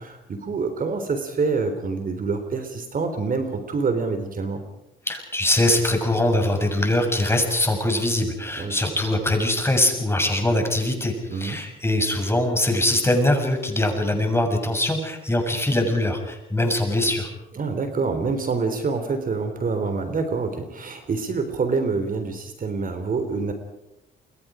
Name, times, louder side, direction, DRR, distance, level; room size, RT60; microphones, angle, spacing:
voice 1, 0.0-4.6 8.6-8.8 11.3-11.6 17.6-23.5, right 4 dB, 45° right, 7 dB, 3.6 m, -26 dB
voice 2, 5.1-17.3, left 1 dB, 10° left, 4 dB, 6.9 m, -22 dB
29.0 x 23.5 x 5.0 m, 0.89 s
cardioid pair, 90°, 20 cm